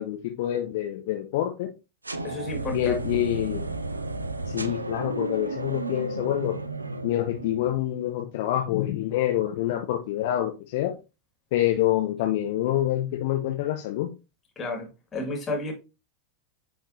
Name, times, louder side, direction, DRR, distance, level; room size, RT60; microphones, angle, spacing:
voice 1, 0.0-1.7 2.7-3.7 4.5-6.6 7.0-10.9 11.5-14.1, left 13 dB, 50° left, 0.8 m, -26 dB
sound 1, 2.0-8.0, right 2 dB, 80° right, 0.5 m, -33 dB
voice 2, 2.2-3.2 14.6-15.7, left 2 dB, 20° left, 2.2 m, -32 dB
9.4 x 3.8 x 2.8 m
figure-of-eight pair, 90°, 0 cm